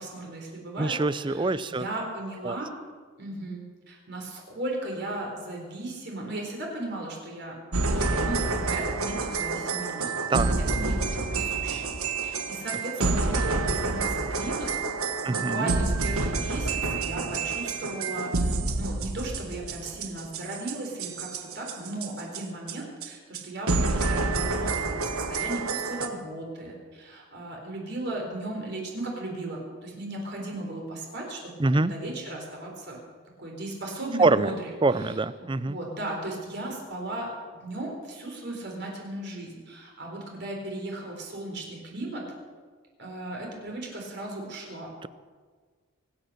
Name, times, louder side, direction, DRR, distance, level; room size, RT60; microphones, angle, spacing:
voice 1, 0.0-2.7 3.2-10.2 10.7-11.9 12.2-14.7 15.2-33.0 33.4-34.7 35.0-42.2 43.0-44.9, right 1 dB, 50° right, 0 dB, 4.0 m, -36 dB
voice 2, 0.8-1.8 2.4-2.6 10.3-10.6 13.0-13.4 15.2-15.7 31.6-31.9 34.2-34.5 34.8-35.8, right 3 dB, 20° right, 16 dB, 0.4 m, -25 dB
sound 1, 7.7-22.4 22.7-22.8 23.0-23.1 23.3-23.4 23.7-26.1, right 3 dB, 80° right, 1.5 m, -28 dB
23.5 x 9.0 x 6.6 m, 1.5 s
head